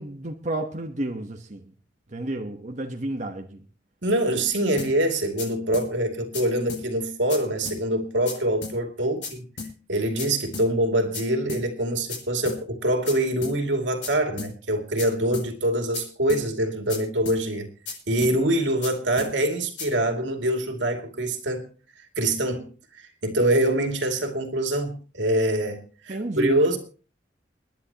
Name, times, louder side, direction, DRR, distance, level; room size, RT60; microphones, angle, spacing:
voice 1, 0.0-1.6 2.1-3.6 26.1-26.6, right 1 dB, 40° right, 1.2 m, -31 dB
voice 2, 4.0-9.4 9.9-17.7 18.1-21.7 22.2-22.7 23.2-26.8, right 1 dB, 85° right, 2.6 m, -24 dB
sound 1, 4.8-4.9 5.4-5.5 5.7-5.9 6.3-6.4 6.7-6.8 7.3-7.4 7.7-7.8 8.3-8.4 8.6-8.8 9.2-9.3 9.6-9.7 10.2-10.3 10.5-10.7 11.1-11.2 11.5-11.6 12.1-12.2 12.5-12.6 13.1-13.2 13.4-13.6 14.0-14.1 14.4-14.5 15.0-15.1 15.3-15.5 15.9-16.0 16.3-16.4 16.9-17.0 17.3-17.4 17.9-18.0 18.2-18.4 18.8-18.9 19.2-19.3 19.8-19.9, left 4 dB, 85° left, 6.0 m, -34 dB
29.0 x 10.5 x 2.9 m
head